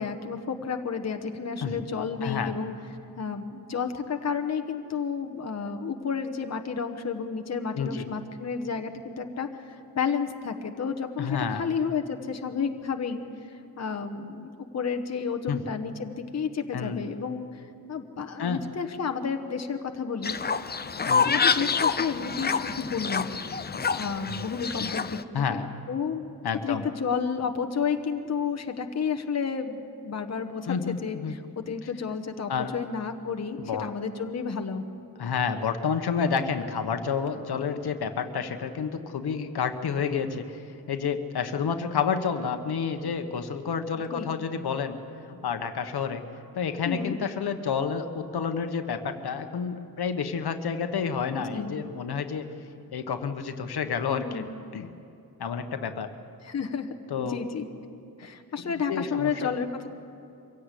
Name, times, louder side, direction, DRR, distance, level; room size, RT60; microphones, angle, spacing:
voice 1, 0.0-2.7 3.2-13.2 13.5-20.4 21.2-23.3 23.9-25.2 25.5-25.6 25.9-26.3 26.6-34.8 44.1-44.3 46.8-47.2 51.3-51.7 54.1-54.6 56.4-56.9 57.2-57.7 58.2-59.9, left 6 dB, 45° left, 6 dB, 1.1 m, -31 dB
voice 2, 2.2-2.5 7.7-8.0 11.2-11.6 15.5-15.6 16.7-17.0 18.4-18.6 21.1-21.4 24.3-24.4 24.8-24.9 25.3-25.6 26.4-26.9 30.7-31.3 32.5-32.7 33.6-33.8 35.2-40.6 40.9-45.0 45.3-46.3 46.5-52.5 52.9-54.5 54.7-54.9 55.4-56.1 57.1-57.4 58.6-59.5, left 6 dB, 80° left, 7 dB, 1.2 m, -29 dB
Fowl, 20.2-25.2, left 5 dB, 25° left, 0.5 m, -27 dB
24.0 x 16.5 x 8.3 m, 2.8 s
wide cardioid pair, 150°, 38 cm